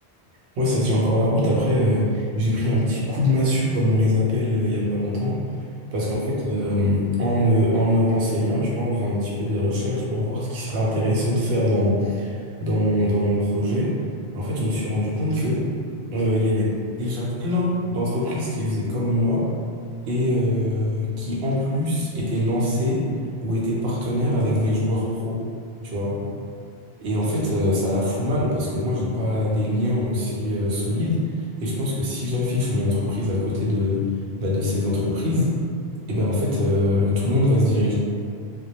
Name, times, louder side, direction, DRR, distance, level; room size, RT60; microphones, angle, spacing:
voice 1, 0.6-5.4 5.9-14.0 14.3-15.6 16.1-16.7 17.0-19.5 20.1-23.1 23.4-25.4 25.8-26.3 27.0-34.1 34.4-35.5 36.1-37.9, left 1 dB, 85° right, -5 dB, 0.9 m, -23 dB
2.2 x 2.1 x 2.8 m, 2.3 s
omnidirectional pair, 1.1 m